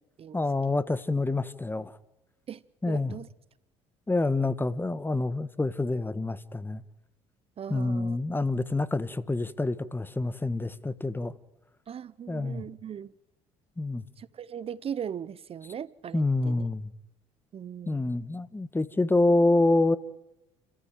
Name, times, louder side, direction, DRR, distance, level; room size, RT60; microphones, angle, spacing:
voice 1, 0.3-2.0 2.8-3.1 4.1-6.8 7.7-11.3 12.3-12.6 13.8-14.0 16.1-16.9 17.9-20.0, left 2 dB, 15° left, 1.5 m, -27 dB
voice 2, 2.5-3.3 7.6-8.2 11.9-13.1 14.2-16.7 17.5-18.1, right 8 dB, 45° right, 0.8 m, -39 dB
30.0 x 15.5 x 9.1 m
hypercardioid pair, 65°, 14 cm